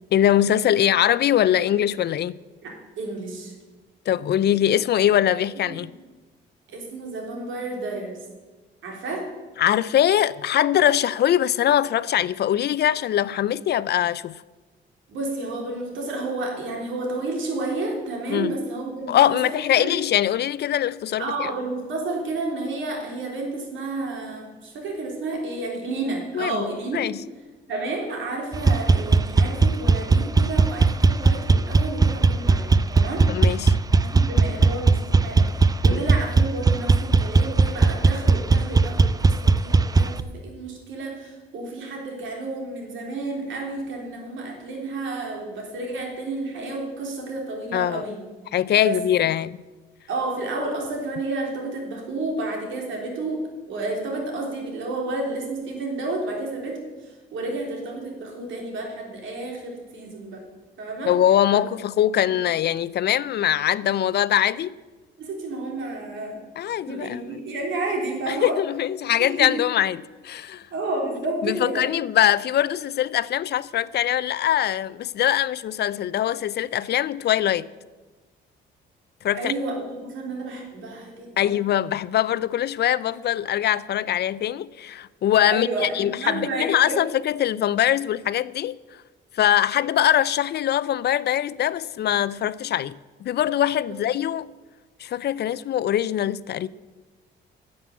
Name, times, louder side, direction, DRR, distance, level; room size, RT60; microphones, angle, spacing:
voice 1, 0.1-2.4 4.1-5.9 9.6-14.4 18.3-18.5 19.1-21.5 26.3-27.2 33.3-33.8 35.9-36.0 47.7-48.0 48.5-49.6 61.1-64.7 66.6-67.4 68.3-70.7 71.4-77.7 79.2-79.5 81.4-88.8 89.3-94.5 95.0-96.7, left 11 dB, 55° left, 0.4 m, -22 dB
voice 2, 2.6-3.5 5.1-5.2 5.6-5.8 6.7-8.2 8.8-9.3 15.1-19.9 21.2-27.0 27.7-32.7 33.0-33.3 34.0-48.2 48.8-49.0 50.1-60.4 60.8-61.1 61.5-61.6 62.3-62.4 65.2-66.4 66.8-68.6 69.2-69.5 70.7-71.8 79.3-81.5 85.5-87.0, right 2 dB, 75° right, 3.6 m, -31 dB
sound 1, 28.5-40.2, right 4 dB, 20° right, 0.5 m, -19 dB
11.5 x 7.6 x 8.2 m
cardioid pair, 90°, 20 cm